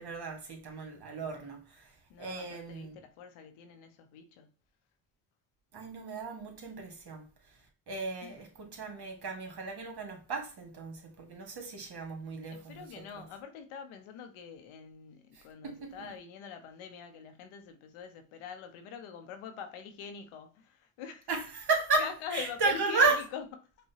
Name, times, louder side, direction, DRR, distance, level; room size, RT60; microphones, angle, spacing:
voice 1, 0.0-1.9 2.2-3.0 5.7-7.3 7.9-13.2 15.3-16.1 21.3-23.2, right 4 dB, 50° right, 1.5 m, -34 dB
voice 2, 2.1-4.5 8.2-8.4 12.4-21.3 22.0-23.5, left 7 dB, 85° left, 0.8 m, -44 dB
4.8 x 2.2 x 2.7 m
supercardioid pair, 55°, 48 cm